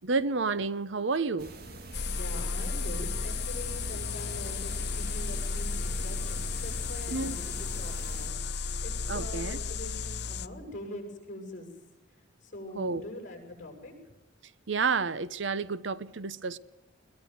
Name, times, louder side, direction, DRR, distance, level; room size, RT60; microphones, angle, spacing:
voice 1, 0.0-1.5 7.1-7.4 9.1-9.6 12.7-13.0 14.7-16.6, right 4 dB, 70° right, 0.8 m, -30 dB
sound 1, 1.4-8.3, right 2 dB, 50° right, 2.2 m, -44 dB
sound 2, 1.9-10.5, left 4 dB, 55° left, 0.9 m, -33 dB
voice 2, 2.1-8.4 8.8-11.7 12.4-14.0, left 1 dB, 40° left, 7.4 m, -43 dB
21.5 x 21.0 x 7.9 m
head